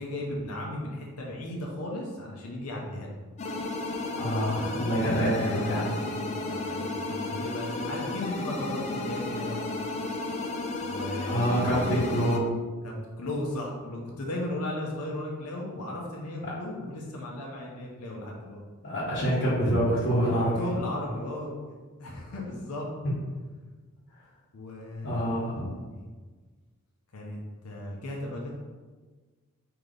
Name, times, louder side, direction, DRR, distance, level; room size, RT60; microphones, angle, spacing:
voice 1, 0.0-3.2 5.8-9.7 10.8-11.5 12.8-18.6 20.6-22.9 24.5-25.4 25.7-26.1 27.1-27.4 27.6-28.5, left 1 dB, 85° left, -2 dB, 0.7 m, -36 dB
sound 1, 3.4-12.4, left 2 dB, 30° left, 0.3 m, -33 dB
voice 2, 4.2-5.9 11.2-12.4 18.8-20.5 25.0-25.7, equal, 50° left, -10 dB, 0.9 m, -26 dB
3.8 x 2.9 x 3.3 m, 1.4 s
head